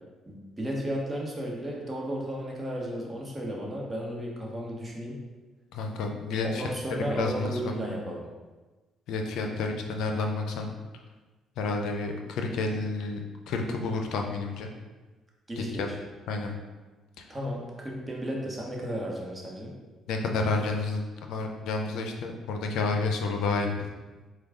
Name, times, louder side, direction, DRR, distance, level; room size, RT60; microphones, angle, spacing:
voice 1, 0.3-5.2 6.4-8.2 15.5-16.0 17.3-19.8, equal, 20° right, -2 dB, 1.1 m, -34 dB
voice 2, 5.7-6.7 7.0-7.7 9.1-10.7 11.6-13.2 13.5-14.7 15.6-15.9 16.3-16.5 17.2-17.3 20.1-23.9, left 3 dB, 80° left, 3 dB, 0.4 m, -30 dB
4.6 x 2.3 x 3.6 m, 1.2 s
supercardioid pair, 70°, 0 cm